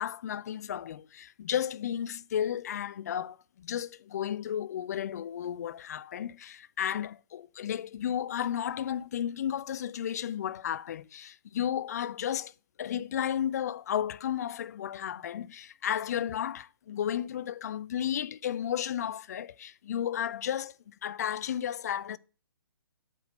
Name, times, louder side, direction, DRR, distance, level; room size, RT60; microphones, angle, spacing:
voice 1, 0.0-12.5 12.8-22.2, left 10 dB, 45° left, 0.4 m, -33 dB
8.2 x 5.0 x 6.2 m
figure-of-eight pair, 130°, 12 cm